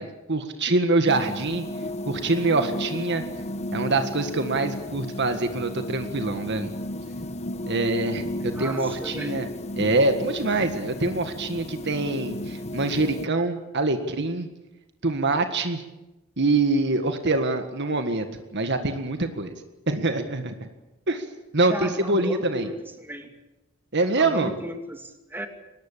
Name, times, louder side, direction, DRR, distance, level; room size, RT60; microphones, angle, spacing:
voice 1, 0.0-1.7 2.1-3.2 3.7-6.7 7.7-9.5 9.8-14.5 15.0-15.8 16.4-18.3 18.5-19.5 19.9-20.7 21.1-21.3 21.5-22.7 23.9-24.5, right 2 dB, 55° right, 7 dB, 1.8 m, -25 dB
sound 1, 1.1-13.3, left 1 dB, 30° left, 0.9 m, -34 dB
voice 2, 8.5-9.5 21.7-23.3 24.2-25.5, right 1 dB, 10° right, 5 dB, 2.6 m, -35 dB
24.0 x 19.5 x 8.6 m, 1.0 s
head